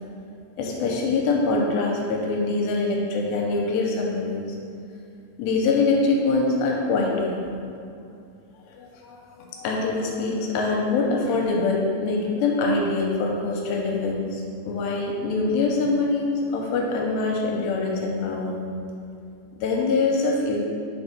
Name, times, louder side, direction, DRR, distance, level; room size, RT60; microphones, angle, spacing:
voice 1, 0.6-4.5 5.4-7.4 8.7-18.6 19.6-20.6, left 3 dB, 85° left, -1 dB, 2.7 m, -24 dB
6.7 x 3.6 x 5.4 m, 2.5 s
omnidirectional pair, 5.0 m